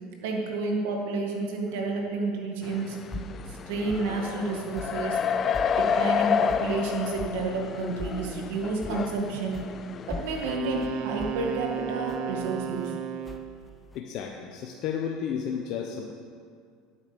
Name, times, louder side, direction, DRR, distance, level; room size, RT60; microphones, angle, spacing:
voice 1, 0.2-3.0 3.5-5.2 5.7-9.6 10.1-12.9, right 3 dB, 80° right, 1 dB, 1.9 m, -30 dB
sound 1, 2.6-10.5, left 7 dB, 35° left, 0.3 m, -30 dB
sound 2, 3.1-3.4 3.9-4.1 4.7-5.0 5.5-5.8 6.5-6.7 7.2-7.4 8.0-8.3 8.8-9.1 9.5-9.7 10.1-12.9 13.2-14.0, left 2 dB, 10° left, 0.8 m, -40 dB
Wind instrument woodwind instrument, 10.4-13.6, right 9 dB, 60° right, 0.6 m, -34 dB
voice 2, 13.9-16.1, left 7 dB, 60° left, 2 dB, 0.8 m, -32 dB
9.6 x 8.5 x 5.2 m, 2.2 s
supercardioid pair, 100°, 0 cm